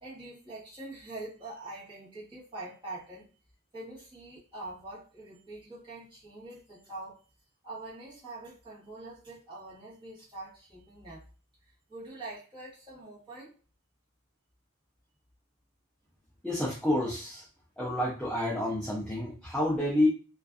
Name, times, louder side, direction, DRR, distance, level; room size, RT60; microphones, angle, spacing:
voice 1, 0.0-3.3 3.7-7.2 7.6-11.3 11.6-13.6, right 2 dB, 20° right, -8 dB, 1.2 m, -44 dB
voice 2, 16.4-17.4 17.8-20.1, left 1 dB, 5° left, -7 dB, 0.4 m, -29 dB
2.5 x 2.4 x 2.3 m, 0.37 s
head